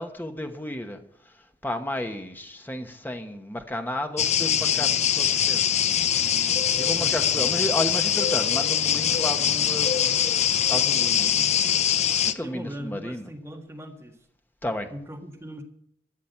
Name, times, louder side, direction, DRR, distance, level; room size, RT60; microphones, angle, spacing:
voice 1, 0.0-5.7 6.8-10.1 10.7-11.6 12.2-13.3 14.6-14.9, left 1 dB, 10° left, 6 dB, 1.1 m, -32 dB
sound 1, 4.2-12.3, left 9 dB, 40° left, 0.6 m, -23 dB
voice 2, 6.6-7.6 12.4-14.2 14.9-15.6, equal, 15° right, 2 dB, 1.7 m, -40 dB
13.5 x 7.3 x 8.3 m, 0.72 s
head